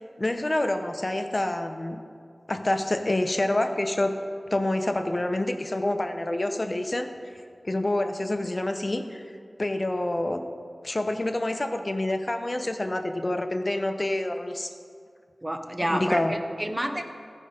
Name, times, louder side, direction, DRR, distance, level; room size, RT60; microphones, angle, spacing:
voice 1, 0.2-2.0 2.5-4.1 4.5-7.1 7.6-9.2 9.6-10.4 10.8-14.7 15.9-16.3, left 1 dB, 40° left, 6 dB, 0.8 m, -27 dB
voice 2, 15.4-17.0, right 1 dB, 20° right, 6 dB, 0.9 m, -29 dB
14.5 x 5.3 x 5.1 m, 2.2 s
cardioid pair, 45°, 0 cm